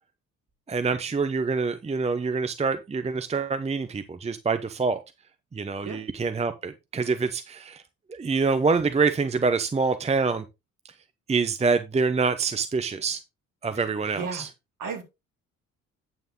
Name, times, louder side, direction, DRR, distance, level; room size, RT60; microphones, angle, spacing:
voice 1, 0.7-5.0 5.5-7.8 8.1-10.4 11.3-13.2 13.6-14.5, right 4 dB, 15° right, 11 dB, 0.8 m, -26 dB
voice 2, 14.1-14.5 14.8-15.0, right 5 dB, 50° right, 6 dB, 2.6 m, -34 dB
9.2 x 6.0 x 3.8 m, 0.24 s
figure-of-eight pair, 45°, 41 cm